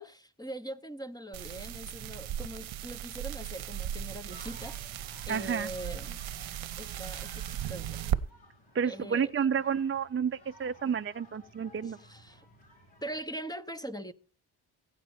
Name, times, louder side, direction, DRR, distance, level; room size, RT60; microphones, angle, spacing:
voice 1, 0.0-4.8 5.3-6.2 6.8-8.1 8.8-9.3 11.8-12.4 13.0-14.1, right 1 dB, 10° left, 0.9 m, -42 dB
sound 1, 1.3-8.2, right 11 dB, 75° right, 0.8 m, -37 dB
sound 2, 4.3-13.2, equal, 75° left, 5.1 m, -55 dB
voice 2, 5.3-5.7 8.7-12.0, right 7 dB, 30° right, 0.5 m, -30 dB
16.0 x 8.9 x 4.3 m
cardioid pair, 70°, 47 cm